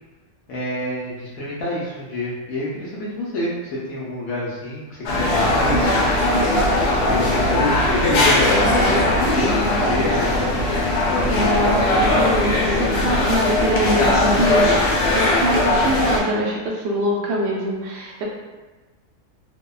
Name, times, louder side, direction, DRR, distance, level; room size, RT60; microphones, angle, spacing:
voice 1, 0.5-6.0 7.1-10.4 11.0-11.6, left 1 dB, 70° left, -6 dB, 0.9 m, -28 dB
sound 1, 5.0-16.2, left 1 dB, 90° left, 1.2 m, -19 dB
voice 2, 11.3-14.7 15.1-18.2, equal, 75° right, -3 dB, 0.6 m, -24 dB
2.7 x 2.1 x 2.2 m, 1.2 s
omnidirectional pair, 1.7 m